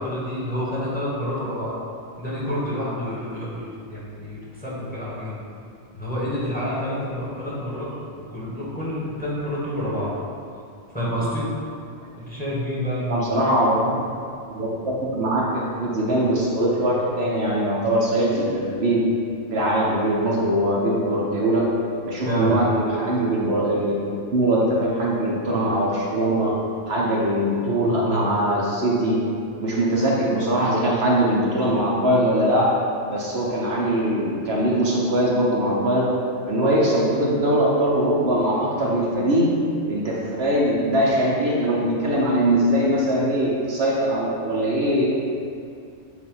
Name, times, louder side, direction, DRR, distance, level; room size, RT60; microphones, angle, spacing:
voice 1, 0.0-1.7 2.2-5.4 5.9-7.9 8.3-10.1 10.9-11.4 12.3-13.4 22.2-22.6, equal, 5° left, -8 dB, 1.6 m, -28 dB
voice 2, 13.1-13.9 14.5-19.0 19.5-21.7 22.0-26.5 26.9-29.2 29.6-32.7 33.1-36.1 36.5-39.5 39.9-45.1, right 1 dB, 60° right, -5 dB, 1.1 m, -21 dB
8.1 x 2.8 x 5.5 m, 2.4 s
omnidirectional pair, 1.3 m